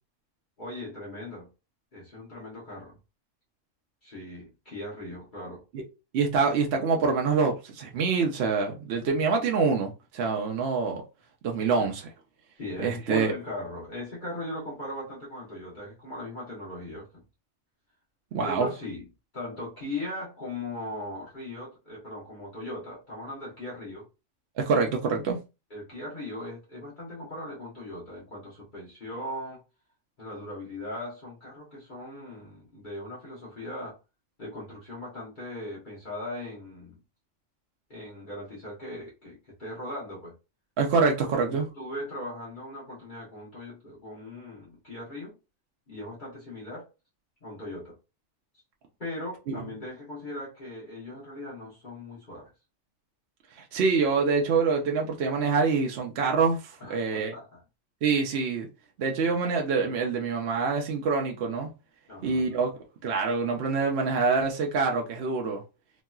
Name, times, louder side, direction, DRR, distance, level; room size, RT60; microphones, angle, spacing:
voice 1, 0.6-1.5 1.9-3.0 4.0-5.6 11.8-11.9 12.6-17.2 18.4-19.1 19.3-24.0 25.7-29.6 30.2-34.0 34.4-37.0 37.9-40.3 41.2-45.3 45.9-46.9 47.4-48.0 49.0-52.5 56.8-57.6 59.2-59.3 62.1-62.6, left 1 dB, 40° left, 1.2 m, -39 dB
voice 2, 6.1-11.0 11.4-12.1 12.8-13.3 18.3-18.7 24.6-25.4 40.8-41.7 49.5-49.6 53.7-57.3 58.0-58.7 59.0-61.7 62.2-62.7 63.0-65.6, right 4 dB, 65° right, 0.8 m, -25 dB
3.0 x 2.8 x 2.3 m
omnidirectional pair, 1.3 m